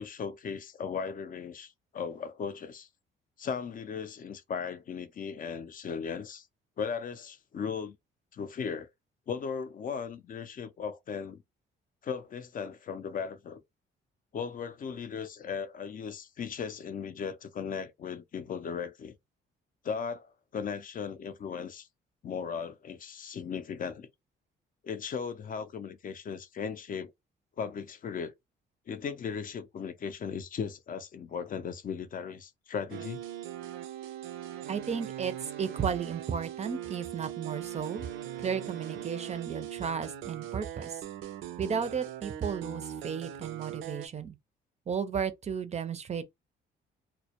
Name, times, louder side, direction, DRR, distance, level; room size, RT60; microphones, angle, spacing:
voice 1, 0.0-2.9 3.4-6.5 6.8-8.0 8.3-8.9 9.3-11.4 12.0-13.6 14.3-19.1 19.8-21.9 22.2-24.1 24.8-27.1 27.6-28.3 28.9-33.2, left 6 dB, 45° left, 0.5 m, -37 dB
sound 1, 32.9-44.1, right 11 dB, 85° right, 0.4 m, -40 dB
voice 2, 34.7-35.3 35.6-38.1 38.4-41.0 41.6-44.4 44.9-46.2, right 7 dB, 35° right, 0.5 m, -34 dB
2.1 x 2.1 x 2.8 m
cardioid pair, 90°, 20 cm